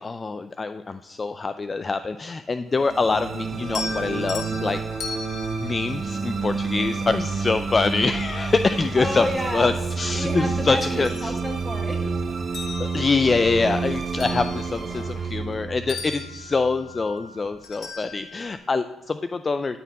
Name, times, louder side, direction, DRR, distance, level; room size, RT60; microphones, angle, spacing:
voice 1, 0.0-4.8 5.6-9.3 9.5-11.3 12.8-19.8, left 4 dB, 30° left, 0.3 m, -25 dB
sound 1, 2.7-17.1, right 4 dB, 45° right, 0.7 m, -29 dB
sound 2, 3.6-7.0 8.6-8.7 9.2-10.4 10.8-12.0 12.4-15.6 15.9-18.6, left 5 dB, 55° left, 1.2 m, -38 dB
voice 2, 8.7-9.8 10.2-12.4 14.8-15.4, equal, 5° left, 1.5 m, -31 dB
12.5 x 4.3 x 4.1 m
cardioid pair, 90°, 0 cm